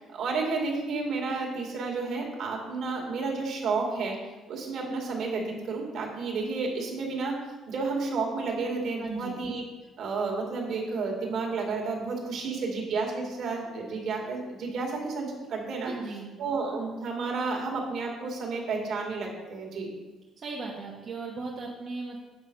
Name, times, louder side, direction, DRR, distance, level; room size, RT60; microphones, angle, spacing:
voice 1, 0.0-4.2 4.5-9.6 10.0-15.9 16.4-19.9, right 4 dB, 60° right, 0 dB, 2.1 m, -31 dB
voice 2, 9.0-9.4 15.8-16.3 20.4-22.2, right 3 dB, 35° right, -4 dB, 1.1 m, -36 dB
8.0 x 5.7 x 5.3 m, 1.2 s
cardioid pair, 155°, 0 cm